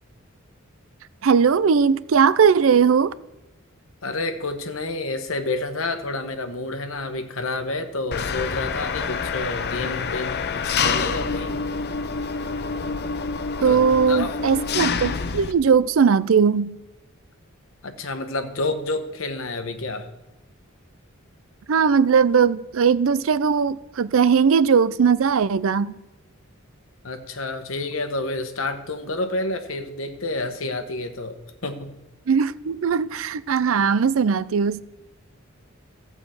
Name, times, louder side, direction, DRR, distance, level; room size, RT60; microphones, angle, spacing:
voice 1, 1.2-3.2 13.6-16.8 21.7-26.0 32.3-34.8, right 6 dB, 70° right, 0.4 m, -19 dB
voice 2, 4.0-11.6 13.6-13.8 14.1-14.3 17.8-20.1 27.0-31.9, left 2 dB, 70° left, 1.1 m, -29 dB
Engine, 8.1-15.5, left 5 dB, 55° left, 0.6 m, -27 dB
13.5 x 4.9 x 7.7 m
head